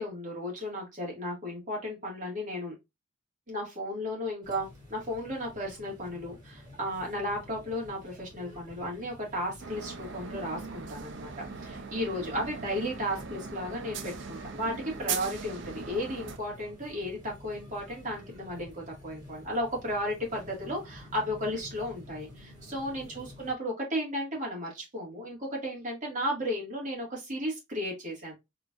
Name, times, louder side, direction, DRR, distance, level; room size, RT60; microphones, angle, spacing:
voice 1, 0.0-2.7 3.5-11.3 11.6-28.3, equal, 40° right, 1.9 m, -34 dB
sound 1, 4.4-23.5, left 1 dB, 20° right, 1.9 m, -50 dB
sound 2, 9.6-16.4, right 6 dB, 75° right, 0.6 m, -40 dB
3.7 x 3.1 x 2.4 m
head